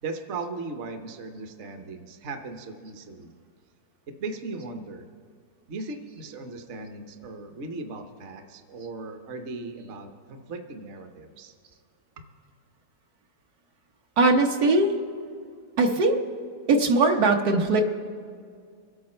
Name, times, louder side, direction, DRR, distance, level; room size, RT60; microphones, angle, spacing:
voice 1, 0.0-3.3 4.1-5.1 5.7-11.5, right 3 dB, 50° right, 6 dB, 1.1 m, -37 dB
voice 2, 14.2-14.9 15.8-16.2 16.7-17.8, right 2 dB, 70° right, 3 dB, 1.5 m, -20 dB
24.0 x 8.7 x 4.4 m, 2.2 s
omnidirectional pair, 1.7 m